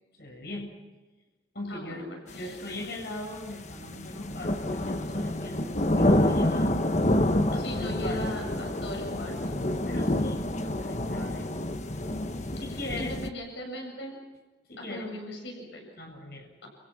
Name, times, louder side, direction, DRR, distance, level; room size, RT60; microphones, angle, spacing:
voice 1, 0.2-0.7 1.5-2.0 2.3-6.8 7.5-8.4 9.8-11.6 12.6-13.2 14.7-15.1 16.0-16.5, left 1 dB, 55° left, 1 dB, 7.9 m, -39 dB
voice 2, 1.7-2.6 7.5-9.6 12.7-14.2 14.8-15.9 16.6-16.7, left 1 dB, 75° left, 1 dB, 7.1 m, -39 dB
sound 1, 2.3-13.3, left 1 dB, 40° left, 1.3 m, -28 dB
29.5 x 29.0 x 6.1 m, 1.2 s
head